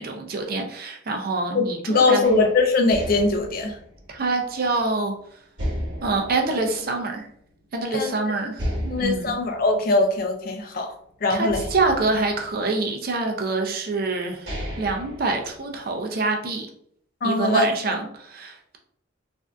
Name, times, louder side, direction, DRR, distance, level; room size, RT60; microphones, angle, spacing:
voice 1, 0.0-2.4 4.1-5.1 6.0-7.3 7.7-9.4 11.3-14.5 14.8-16.7 17.2-18.8, right 3 dB, 45° right, 3 dB, 0.5 m, -26 dB
voice 2, 1.5-3.8 7.9-8.1 8.9-10.9 11.2-11.6 17.2-17.7, left 3 dB, 45° left, 4 dB, 0.4 m, -21 dB
sound 1, 2.2-5.0 5.6-7.5 7.9-8.0 8.5-10.9 11.5-13.1 13.8-13.9 14.3-16.1, equal, 65° right, 1.2 m, -34 dB
3.3 x 2.6 x 2.4 m, 0.66 s
head